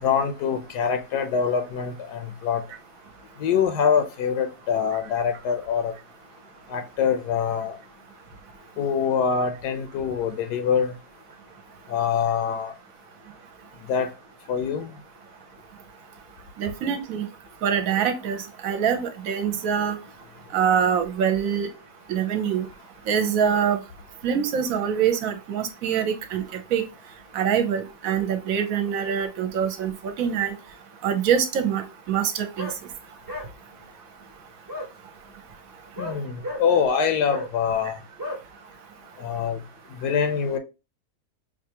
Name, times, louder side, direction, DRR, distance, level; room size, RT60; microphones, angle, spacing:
voice 1, 0.0-2.6 3.4-5.9 6.7-7.8 8.8-11.0 11.9-12.7 13.9-14.1 14.5-14.9 36.0-38.0 39.2-39.6 39.9-40.6, left 7 dB, 85° left, 1.2 m, -24 dB
voice 2, 16.6-17.3 17.6-18.4 18.6-20.0 20.5-21.7 22.1-22.6 23.1-23.8 24.2-26.4 26.7-26.8 27.3-29.9 30.2-30.5 31.0-31.8 32.1-32.3 32.6-32.7, right 8 dB, 65° right, 1.0 m, -24 dB
sound 1, 32.6-32.8 33.3-33.5 34.7-34.9 35.9-36.6 37.3-37.5 38.2-38.4, left 1 dB, 20° right, 0.6 m, -33 dB
4.7 x 2.5 x 2.8 m
omnidirectional pair, 1.7 m